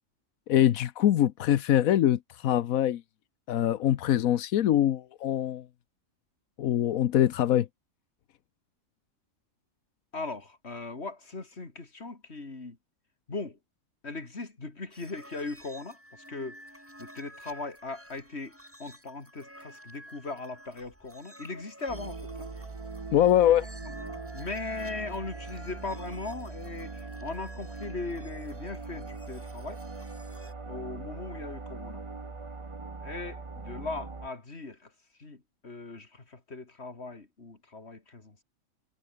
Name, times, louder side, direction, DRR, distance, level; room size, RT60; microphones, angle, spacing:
voice 1, 0.5-3.0 3.5-5.7 6.6-7.7 23.1-23.6, left 11 dB, 90° left, 1.2 m, -23 dB
voice 2, 10.1-12.8 13.3-13.6 14.0-16.6 17.0-22.5 23.8-23.9 24.3-29.8 30.6-32.0 33.0-34.9 35.2-38.4, left 3 dB, 50° left, 3.4 m, -39 dB
sound 1, 14.9-30.5, equal, 10° right, 7.5 m, -52 dB
sound 2, 21.9-34.3, right 3 dB, 25° right, 1.1 m, -41 dB
omnidirectional pair, 1.4 m